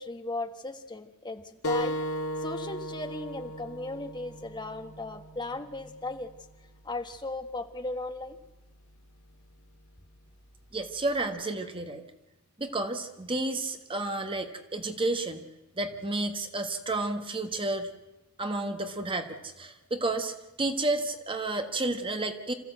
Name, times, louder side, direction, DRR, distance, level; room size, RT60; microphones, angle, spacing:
voice 1, 0.0-2.0 2.4-6.3 6.8-8.4, left 2 dB, 20° left, 6 dB, 1.3 m, -36 dB
sound 1, 1.6-6.8, equal, 80° left, 2.6 m, -36 dB
voice 2, 10.7-12.0 12.6-15.4 15.8-17.9 18.4-22.5, right 2 dB, 25° right, 7 dB, 1.4 m, -31 dB
26.5 x 14.5 x 7.9 m, 0.94 s
head